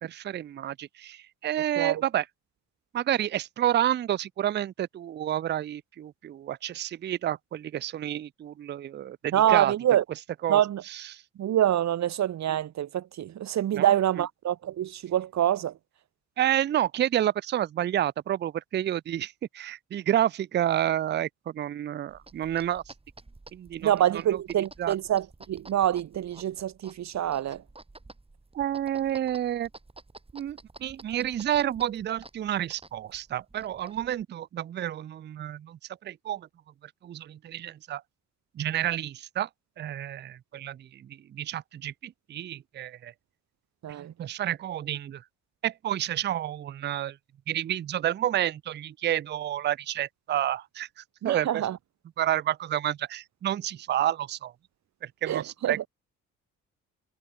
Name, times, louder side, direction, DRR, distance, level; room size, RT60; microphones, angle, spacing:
voice 1, 0.0-2.2 2.9-9.7 10.4-10.6 11.1-11.2 13.7-14.0 16.4-22.8 23.5-23.9 24.8-24.9 28.5-29.7 30.3-36.5 37.0-38.0 38.6-39.5 39.8-41.0 41.3-43.1 43.9-45.2 45.6-47.1 47.5-50.9 51.2-51.6 52.2-54.5 55.2-55.9, right 11 dB, 35° right, 0.4 m, -29 dB
voice 2, 9.3-10.0 10.5-10.8 11.4-15.7 23.8-27.6 43.8-44.1 51.2-51.8 55.3-55.9, right 11 dB, 65° right, 1.6 m, -26 dB
sound 1, 22.1-34.2, right 3 dB, 20° right, 6.1 m, -51 dB
cardioid pair, 90°, 30 cm